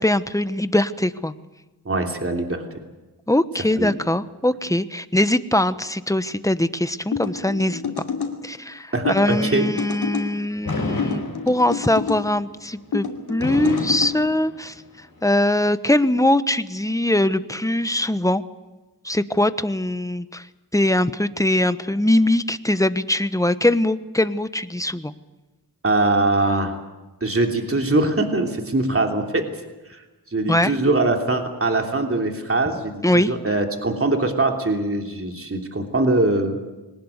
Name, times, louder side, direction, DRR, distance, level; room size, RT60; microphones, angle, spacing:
voice 1, 0.0-1.3 3.3-7.8 8.4-14.7 15.2-18.4 19.0-20.5 20.7-25.1 30.5-30.7 33.0-33.3, left 1 dB, 10° left, 12 dB, 1.1 m, -21 dB
voice 2, 1.8-2.6 3.8-3.9 8.9-9.7 25.8-26.8 27.2-29.5 29.9-30.0 30.3-36.6, right 2 dB, 35° right, 3 dB, 3.1 m, -22 dB
sound 1, 7.1-8.4 9.1-10.3 11.0-12.2 12.9-14.1, left 6 dB, 85° left, 2.7 m, -29 dB
Fireworks, 10.6-12.0 13.4-14.9, left 2 dB, 60° left, 6.5 m, -29 dB
23.0 x 19.0 x 8.1 m, 1.1 s
cardioid pair, 55°, 39 cm